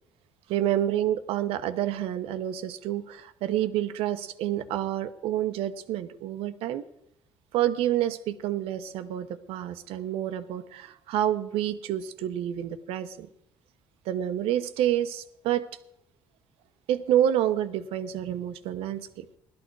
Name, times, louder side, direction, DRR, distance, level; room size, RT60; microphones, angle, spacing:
voice 1, 0.5-6.8 7.5-13.3 14.1-15.7 16.9-19.3, right 11 dB, 85° right, 10 dB, 1.0 m, -28 dB
17.5 x 12.5 x 4.7 m, 0.76 s
cardioid pair, 100°, 10 cm